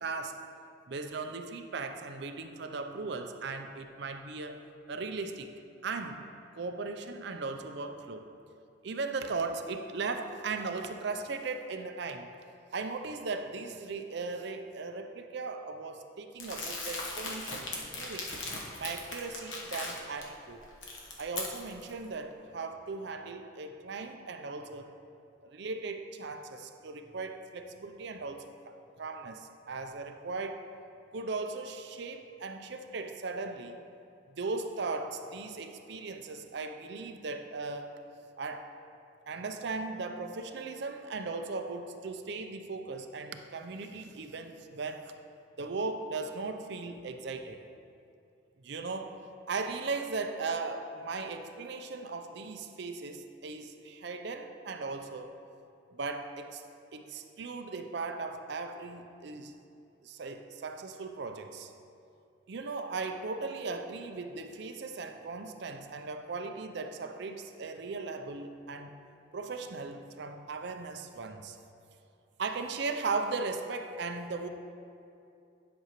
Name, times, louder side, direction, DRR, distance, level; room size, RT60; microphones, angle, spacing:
voice 1, 0.0-0.4 0.9-4.6 4.9-5.5 5.8-6.2 6.5-8.3 8.8-12.3 12.7-18.3 18.8-20.6 21.2-24.9 25.4-28.7 29.0-30.6 31.1-33.8 34.3-37.9 38.4-38.7 39.3-45.1 45.6-47.6 48.6-49.2 49.5-55.4 55.9-56.6 56.9-59.5 60.0-61.7 62.5-69.0 69.3-71.6 72.4-74.5, right 3 dB, 60° right, 6 dB, 0.5 m, -38 dB
Crumpling crinkling, 16.4-20.2 20.6-21.9, left 2 dB, 70° left, 1.1 m, -39 dB
11.0 x 6.0 x 3.0 m, 2.6 s
head